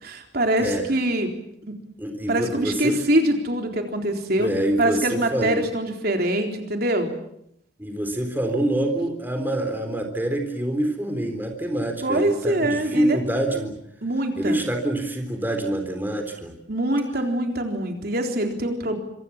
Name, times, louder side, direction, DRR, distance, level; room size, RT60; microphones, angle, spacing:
voice 1, 0.0-1.3 1.6-1.7 2.3-4.5 4.8-7.1 12.0-13.2 14.0-14.6 16.7-19.0, right 1 dB, 55° right, 4 dB, 3.9 m, -24 dB
voice 2, 2.0-3.0 4.4-5.7 7.8-13.8 14.4-16.5, right 1 dB, 10° right, 5 dB, 3.8 m, -26 dB
26.0 x 26.0 x 7.4 m, 0.75 s
head